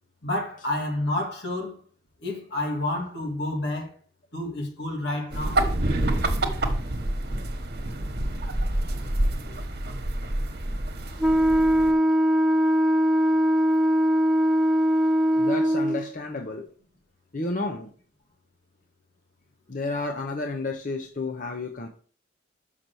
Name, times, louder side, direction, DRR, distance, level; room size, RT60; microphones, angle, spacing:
voice 1, 0.2-1.8 2.2-3.9 4.3-5.6, left 1 dB, 80° left, 2.4 m, -29 dB
sound 1, 5.3-11.9, right 1 dB, 60° right, 1.2 m, -27 dB
Wind instrument woodwind instrument, 11.2-16.1, equal, ahead, 0.4 m, -21 dB
voice 2, 15.4-16.7 17.3-17.9 19.7-21.9, left 2 dB, 50° left, 0.8 m, -31 dB
6.6 x 5.8 x 4.6 m
head